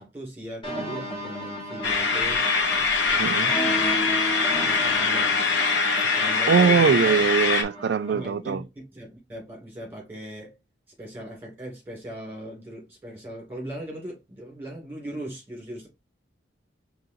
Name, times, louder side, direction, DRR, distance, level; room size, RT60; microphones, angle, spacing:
voice 1, 0.0-2.4 3.1-4.0 4.7-5.4 6.0-7.2 8.1-10.5 11.0-15.9, right 1 dB, 10° right, 2.3 m, -39 dB
sound 1, 0.6-8.2, equal, 25° left, 1.4 m, -34 dB
sound 2, 1.8-7.6, left 4 dB, 75° left, 0.9 m, -23 dB
voice 2, 3.2-3.5 6.5-8.6, right 6 dB, 65° right, 0.3 m, -21 dB
5.3 x 3.1 x 2.7 m
head